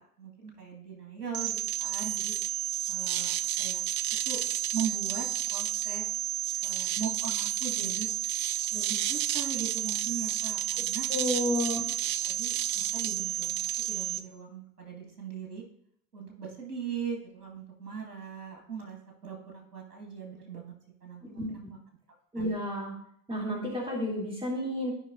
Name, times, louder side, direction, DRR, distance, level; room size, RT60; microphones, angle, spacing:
voice 1, 0.0-2.3 2.9-3.9 4.3-4.4 4.7-6.3 6.6-8.1 8.7-11.1 12.2-13.6 13.9-15.6 16.1-20.7 21.0-21.6 22.4-22.5, right 6 dB, 80° right, 1 dB, 1.8 m, -39 dB
sound 1, 1.3-14.2, right 12 dB, 60° right, 0.6 m, -31 dB
voice 2, 11.1-11.8 21.3-21.7 22.3-22.9 23.3-24.9, left 1 dB, 10° right, -3 dB, 2.9 m, -31 dB
13.0 x 5.3 x 2.5 m, 0.67 s
figure-of-eight pair, 65°, 46 cm